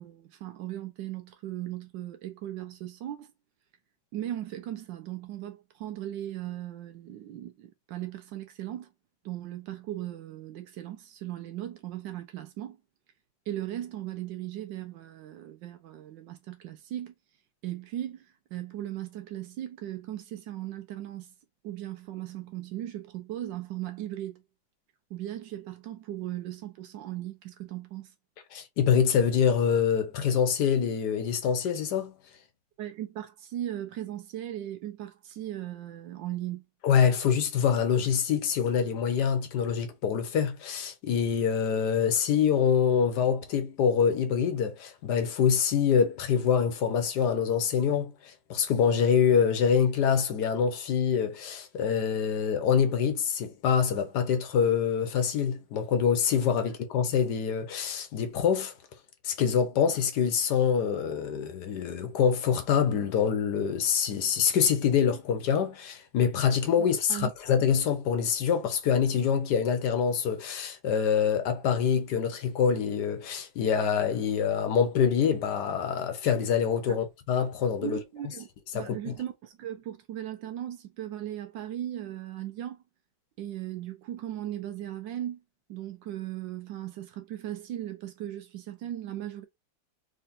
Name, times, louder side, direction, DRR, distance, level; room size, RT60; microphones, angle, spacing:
voice 1, 0.0-3.3 4.1-8.9 9.2-12.8 13.5-17.1 17.6-21.3 21.6-24.4 25.1-28.1 32.8-36.6 67.1-67.3 76.9-77.0 77.8-78.5 78.7-82.8 83.4-85.4 85.7-89.4, right 12 dB, 80° right, 1.3 m, -37 dB
voice 2, 28.5-32.1 36.8-58.7 59.2-78.0 78.7-79.1, left 7 dB, 65° left, 1.3 m, -25 dB
3.7 x 3.3 x 2.6 m
omnidirectional pair, 2.0 m